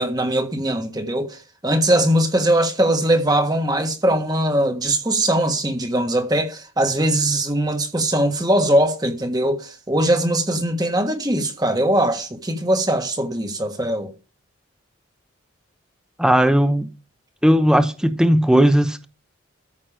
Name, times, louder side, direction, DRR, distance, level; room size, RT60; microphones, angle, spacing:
voice 1, 0.0-14.1, right 1 dB, 20° right, 1.5 m, -21 dB
voice 2, 16.2-16.9 17.4-19.1, equal, 5° right, 0.9 m, -16 dB
14.0 x 6.0 x 5.0 m
head